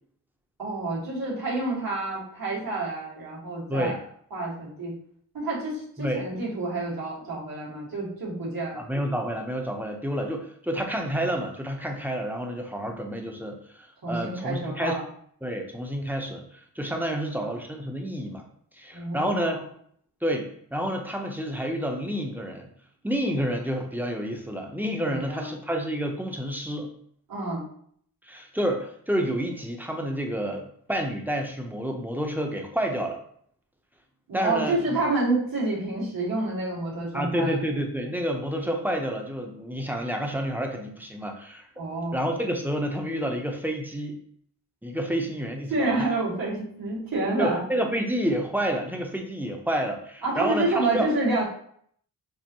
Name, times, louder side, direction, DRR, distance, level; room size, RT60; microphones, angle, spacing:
voice 1, 0.6-3.9 4.3-4.9 5.3-8.8 14.0-15.0 17.1-17.5 18.9-19.6 25.1-25.5 27.3-27.6 34.3-37.5 41.8-42.2 45.7-47.6 50.2-51.4, right 2 dB, 60° right, -6 dB, 2.0 m, -28 dB
voice 2, 8.7-15.0 15.4-18.4 18.7-19.6 20.2-22.7 23.0-26.9 28.2-33.2 34.3-35.0 37.1-41.7 42.1-44.2 44.8-46.1 47.4-51.1, equal, 5° right, 2 dB, 0.8 m, -29 dB
6.8 x 2.5 x 3.0 m, 0.63 s
wide cardioid pair, 90°, 38 cm